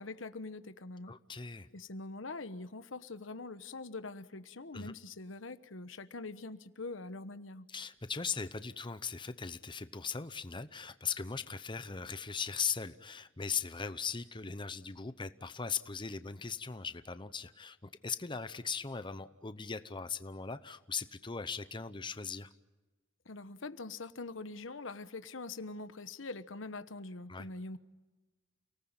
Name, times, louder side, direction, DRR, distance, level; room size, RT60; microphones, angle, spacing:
voice 1, 0.0-1.1 1.7-7.7 23.2-27.8, left 3 dB, 85° left, 12 dB, 1.2 m, -44 dB
voice 2, 1.1-1.7 4.7-4.9 7.7-22.5 27.3-27.5, left 5 dB, 25° left, 12 dB, 0.8 m, -39 dB
29.5 x 19.0 x 8.8 m, 1.2 s
head